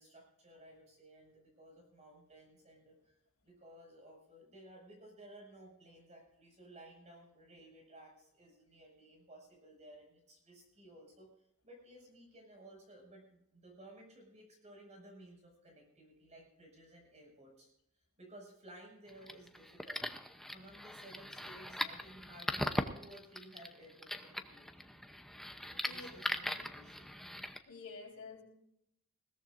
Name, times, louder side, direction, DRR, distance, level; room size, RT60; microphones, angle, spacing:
voice 1, 0.0-3.2 3.4-11.3 11.6-17.7 18.2-24.9 25.6-27.1, right 1 dB, 30° right, 0 dB, 6.4 m, -57 dB
sound 1, 19.1-27.6, left 1 dB, ahead, 0.8 m, -40 dB
voice 2, 27.7-28.4, left 4 dB, 75° left, -2 dB, 4.6 m, -49 dB
21.0 x 17.5 x 2.6 m, 0.78 s
head